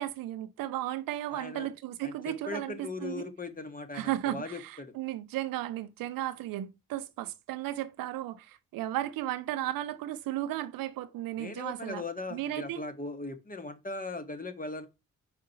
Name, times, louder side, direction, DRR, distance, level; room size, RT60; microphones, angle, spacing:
voice 1, 0.0-3.3 3.9-12.0 12.3-12.8, right 14 dB, 85° right, 0.7 m, -35 dB
voice 2, 1.3-1.7 2.0-4.9 11.4-14.9, left 3 dB, 25° left, 1.5 m, -39 dB
4.9 x 4.5 x 5.8 m
supercardioid pair, 45°, 33 cm